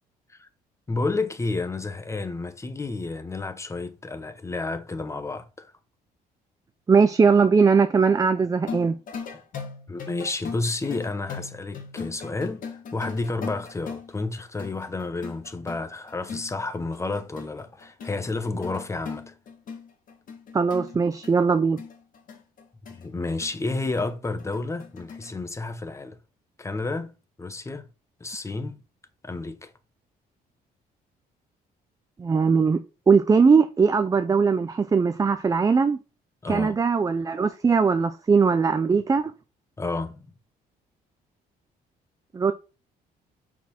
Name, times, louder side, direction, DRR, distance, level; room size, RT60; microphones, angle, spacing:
voice 1, 0.9-5.7 9.9-12.6 12.9-19.3 22.9-26.2 26.6-27.9 28.2-28.8 29.2-29.7 36.4-36.8 39.8-40.3, left 3 dB, 15° left, 0.9 m, -31 dB
voice 2, 6.9-8.9 20.5-21.8 32.2-32.8 33.1-36.0 36.5-39.3 42.3-42.5, right 5 dB, 20° right, 0.5 m, -20 dB
sound 1, 8.6-25.3, left 5 dB, 55° left, 2.1 m, -39 dB
5.9 x 4.3 x 5.8 m
cardioid pair, 125°, 17 cm